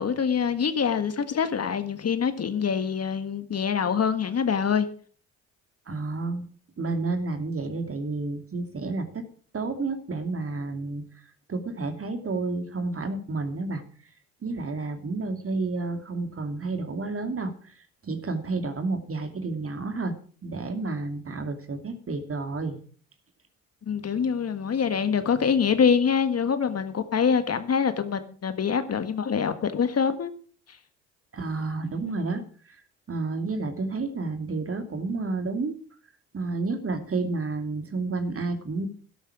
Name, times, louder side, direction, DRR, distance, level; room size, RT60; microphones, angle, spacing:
voice 1, 0.0-4.9 23.9-30.3, left 6 dB, 35° left, 1.7 m, -25 dB
voice 2, 5.9-6.5 6.8-9.2 9.5-11.0 11.5-13.8 14.4-17.7 18.0-20.1 20.4-22.8 31.3-32.4 33.1-35.7 36.3-38.9, right 3 dB, 35° right, 2.8 m, -30 dB
12.5 x 12.0 x 5.0 m
hypercardioid pair, 60°, 40 cm